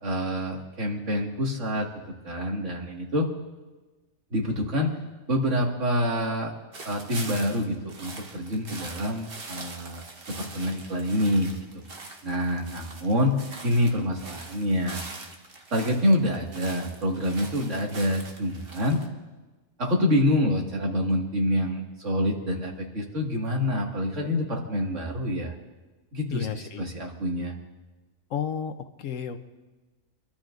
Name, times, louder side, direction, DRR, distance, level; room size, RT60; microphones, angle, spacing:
voice 1, 0.0-3.3 4.3-4.9 5.3-6.5 6.8-11.8 12.2-13.4 13.6-15.0 15.7-19.0 19.8-25.5 26.1-27.6, left 1 dB, 65° right, -1 dB, 2.3 m, -27 dB
sound 1, 6.7-19.1, right 3 dB, 45° right, 1.3 m, -43 dB
voice 2, 26.3-26.8 28.3-29.4, left 8 dB, 75° left, 8 dB, 1.2 m, -32 dB
26.0 x 12.5 x 2.6 m, 1.2 s
omnidirectional pair, 1.4 m